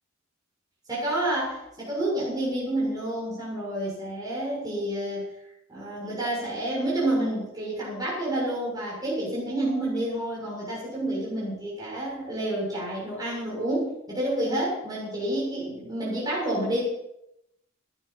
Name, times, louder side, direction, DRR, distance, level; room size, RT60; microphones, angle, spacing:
voice 1, 0.9-5.2 5.7-16.8, right 1 dB, 20° right, -6 dB, 7.2 m, -29 dB
20.0 x 12.5 x 6.0 m, 0.84 s
head